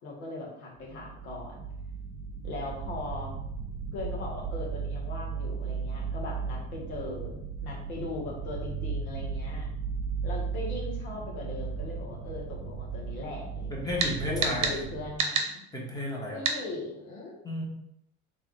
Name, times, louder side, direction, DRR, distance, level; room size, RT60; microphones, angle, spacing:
voice 1, 0.0-1.7 2.4-3.3 3.9-9.7 10.2-15.6 16.3-17.3, left 2 dB, 75° left, -2 dB, 1.5 m, -39 dB
sound 1, 0.8-15.1, right 5 dB, 10° right, 1.4 m, -36 dB
voice 2, 13.7-14.8 15.7-16.4 17.4-17.7, left 1 dB, 10° left, -3 dB, 1.4 m, -33 dB
sound 2, 14.0-14.1 14.4-14.8 15.2-15.5 16.4-16.6, right 5 dB, 45° right, 0.9 m, -27 dB
3.4 x 3.4 x 3.2 m, 0.77 s
hypercardioid pair, 70°, 43 cm